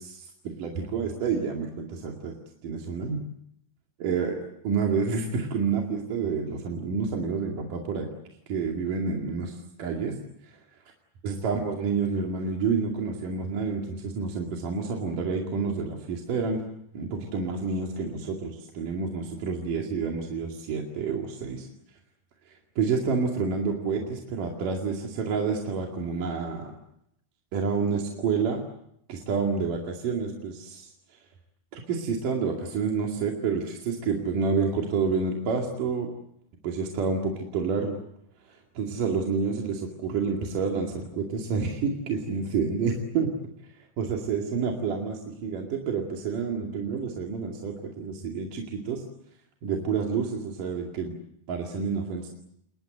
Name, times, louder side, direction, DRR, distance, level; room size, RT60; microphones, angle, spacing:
voice 1, 0.0-2.3 2.6-3.2 4.0-8.1 8.5-10.2 10.5-10.6 11.2-16.6 16.9-21.7 22.5-26.7 27.5-28.6 29.1-31.2 31.7-36.1 36.6-38.0 38.5-43.3 43.8-49.0 49.6-51.1 51.5-52.3, right 5 dB, 55° right, 0 dB, 3.7 m, -29 dB
28.5 x 22.5 x 7.9 m, 0.78 s
omnidirectional pair, 5.0 m